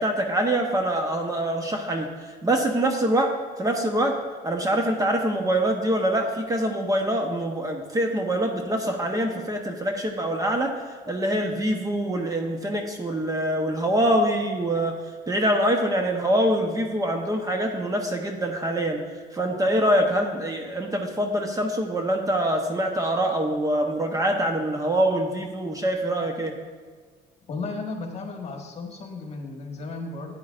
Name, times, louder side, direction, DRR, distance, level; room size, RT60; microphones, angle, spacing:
voice 1, 0.0-2.1 2.4-3.3 3.6-4.2 4.4-15.0 15.3-19.0 19.3-26.5, right 1 dB, 20° right, 3 dB, 1.0 m, -24 dB
voice 2, 27.5-30.4, left 3 dB, 40° left, 1 dB, 1.6 m, -34 dB
11.5 x 9.3 x 2.6 m, 1.5 s
cardioid pair, 110°, 17 cm